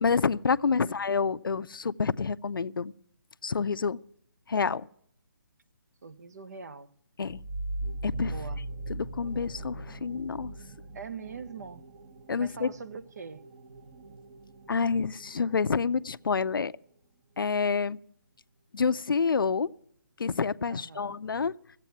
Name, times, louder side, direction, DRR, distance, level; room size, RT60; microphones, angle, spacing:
voice 1, 0.0-2.9 3.4-4.0 4.5-4.9 7.2-7.4 8.0-8.3 8.9-10.5 12.3-12.7 14.7-16.7 17.4-18.0 18.7-19.7 20.2-21.5, left 5 dB, 85° left, 0.5 m, -28 dB
voice 2, 0.8-1.3 6.0-6.9 8.2-8.6 10.9-11.8 12.4-13.4 20.7-21.2, right 5 dB, 50° right, 0.9 m, -43 dB
sound 1, 7.2-16.6, right 2 dB, 30° right, 1.0 m, -40 dB
15.0 x 8.3 x 9.2 m
hypercardioid pair, 165°, 11 cm